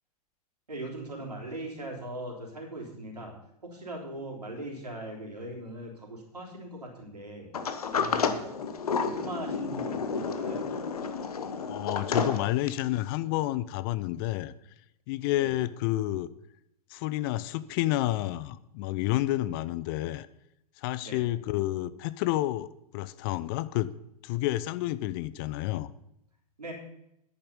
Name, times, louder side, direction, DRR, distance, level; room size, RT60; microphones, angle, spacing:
voice 1, 0.7-3.3 3.6-7.5 7.9-8.5 9.0-10.7 15.3-15.5 21.0-21.2 26.6-26.7, right 1 dB, 75° right, 0 dB, 3.4 m, -40 dB
Sliding door, 7.5-13.0, left 5 dB, 65° left, 1.1 m, -31 dB
voice 2, 11.6-14.5 15.1-16.3 16.9-20.3 20.8-22.7 22.9-23.9 24.2-25.9, left 15 dB, 35° left, 16 dB, 0.5 m, -30 dB
10.5 x 8.6 x 5.5 m, 0.80 s
figure-of-eight pair, 95°, 20 cm